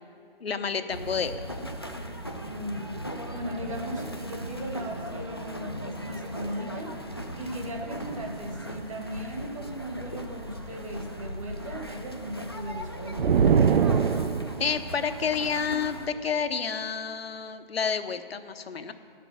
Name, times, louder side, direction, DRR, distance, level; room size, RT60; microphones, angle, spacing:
voice 1, 0.4-1.3 14.6-18.9, left 6 dB, 85° left, 9 dB, 0.9 m, -29 dB
sound 1, 0.9-16.1, equal, 25° left, 0.3 m, -38 dB
voice 2, 2.4-3.0 3.3-13.3, equal, 35° right, 2 dB, 1.3 m, -37 dB
sound 2, 13.2-14.8, right 6 dB, 70° right, 0.5 m, -22 dB
11.5 x 6.0 x 8.3 m, 2.4 s
hypercardioid pair, 165°, 30 cm